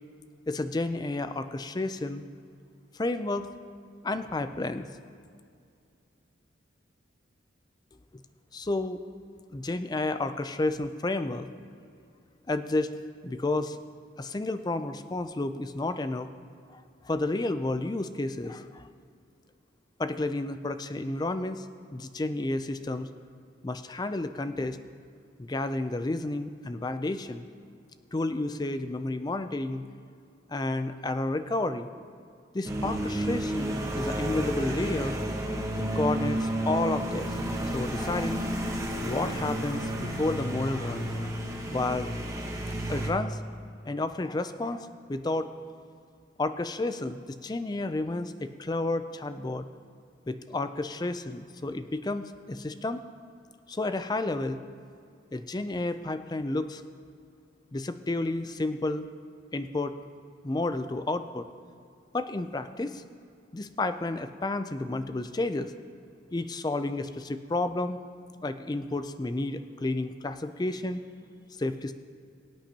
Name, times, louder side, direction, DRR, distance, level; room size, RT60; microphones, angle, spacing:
voice 1, 0.5-2.2 2.9-3.5 4.0-4.9 8.5-9.0 9.5-11.5 12.5-12.9 13.2-13.8 14.2-16.3 16.7-18.9 20.0-21.7 21.9-23.1 23.6-24.8 25.4-27.5 28.1-29.8 30.5-31.9 32.5-35.2 35.8-37.3 37.7-38.4 39.0-41.4 41.7-42.2 42.9-43.4 43.8-45.5 46.4-49.7 50.3-53.0 53.7-54.6 55.3-56.8 57.7-59.1 59.5-59.9 60.4-61.5 62.1-63.0 63.5-65.7 66.3-68.0 68.4-71.0 71.6-71.9, left 2 dB, 20° left, 10 dB, 0.4 m, -31 dB
sound 1, 32.6-43.1, right 1 dB, 15° right, 1.1 m, -31 dB
22.5 x 8.9 x 2.9 m, 2.4 s
head